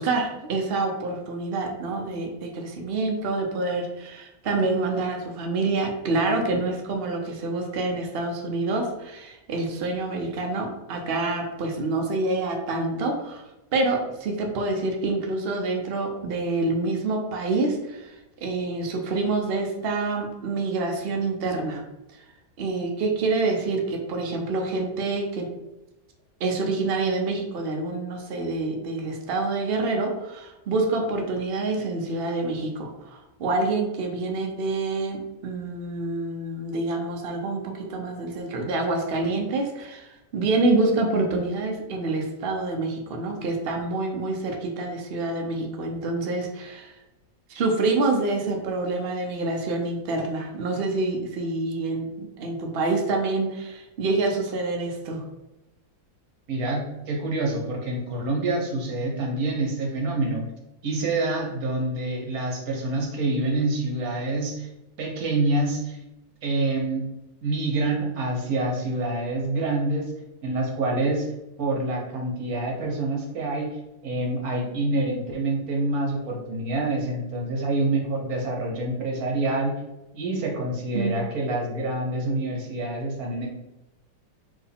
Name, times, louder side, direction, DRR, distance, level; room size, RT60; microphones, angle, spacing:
voice 1, 0.0-13.4 13.7-18.2 18.4-21.8 22.6-25.5 26.4-37.6 37.9-46.9 47.5-55.2 80.9-81.1, right 3 dB, 75° right, 2 dB, 0.5 m, -27 dB
voice 2, 56.5-60.4 60.8-64.7 65.0-66.0 66.4-67.1 67.4-70.1 70.4-71.3 71.6-73.7 74.0-79.7 80.1-83.5, right 2 dB, 55° right, 0 dB, 1.3 m, -26 dB
4.5 x 3.2 x 3.5 m, 0.96 s
omnidirectional pair, 2.0 m